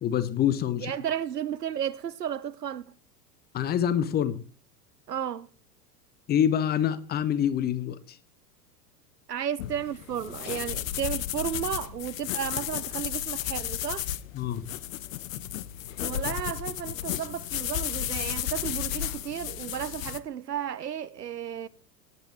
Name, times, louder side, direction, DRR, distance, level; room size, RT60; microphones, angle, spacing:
voice 1, 0.0-0.9 3.5-4.4 6.3-8.2 14.3-14.6, left 9 dB, 20° left, 0.9 m, -26 dB
voice 2, 0.8-2.9 5.1-5.5 9.3-14.1 16.0-21.7, right 9 dB, 75° right, 0.7 m, -33 dB
sound 1, 9.6-20.2, left 12 dB, 55° left, 0.8 m, -33 dB
17.5 x 10.0 x 3.2 m
figure-of-eight pair, 85°, 48 cm